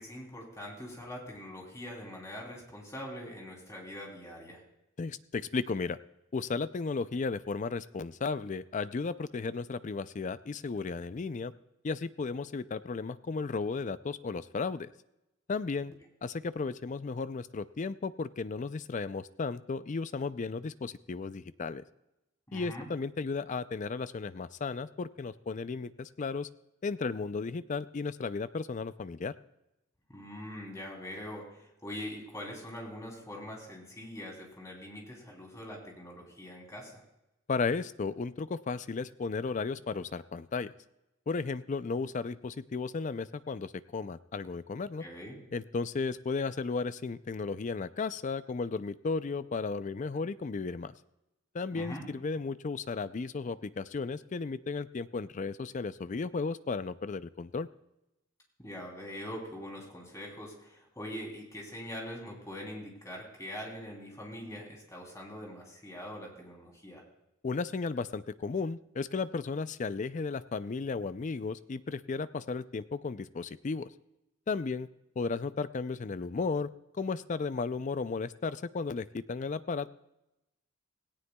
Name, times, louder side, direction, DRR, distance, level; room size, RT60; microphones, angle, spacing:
voice 1, 0.0-4.6 22.5-22.9 30.1-37.0 45.0-45.4 51.7-52.0 58.6-67.0, equal, 15° left, -1 dB, 3.2 m, -43 dB
voice 2, 5.0-6.0 6.3-11.5 11.8-14.9 15.5-15.9 16.2-21.8 22.5-26.5 26.8-29.3 37.5-40.7 41.3-45.0 45.5-50.9 51.5-57.7 67.4-73.9 74.5-74.9 75.2-76.7 77.0-79.9, left 4 dB, 35° left, 14 dB, 0.4 m, -34 dB
17.5 x 17.0 x 2.3 m, 0.90 s
head